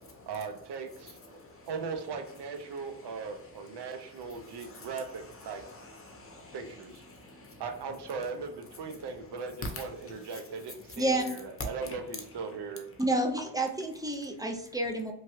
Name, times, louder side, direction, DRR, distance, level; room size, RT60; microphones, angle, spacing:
voice 1, 0.3-1.4 1.7-5.6 6.5-7.0 7.6-12.9, right 5 dB, 65° right, 7 dB, 0.6 m, -39 dB
voice 2, 1.3-1.7 3.8-4.9 5.4-6.7 7.1-7.6 9.7-9.8 11.9-12.0, left 2 dB, 30° left, 2 dB, 0.7 m, -49 dB
voice 3, 13.0-15.1, right 1 dB, 10° right, 3 dB, 0.3 m, -29 dB
3.0 x 2.3 x 3.0 m, 0.74 s
cardioid pair, 100°, 43 cm